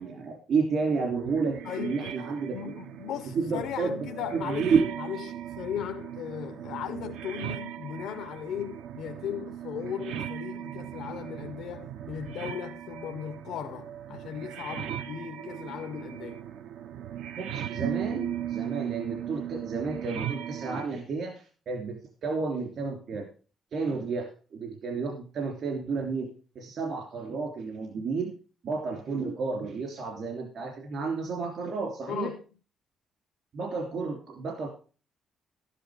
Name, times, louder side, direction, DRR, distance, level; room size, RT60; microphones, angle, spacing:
voice 1, 0.0-2.6 3.3-4.1 4.4-4.9 17.4-23.3 23.7-26.3 26.5-28.3 28.6-32.3 33.5-34.7, right 4 dB, 65° right, 3.0 m, -31 dB
sound 1, 1.0-20.9, right 10 dB, 85° right, 0.6 m, -38 dB
voice 2, 1.6-2.3 2.5-16.5 32.1-32.4, left 10 dB, 85° left, 0.6 m, -37 dB
12.0 x 10.0 x 4.9 m
cardioid pair, 90°, 0 cm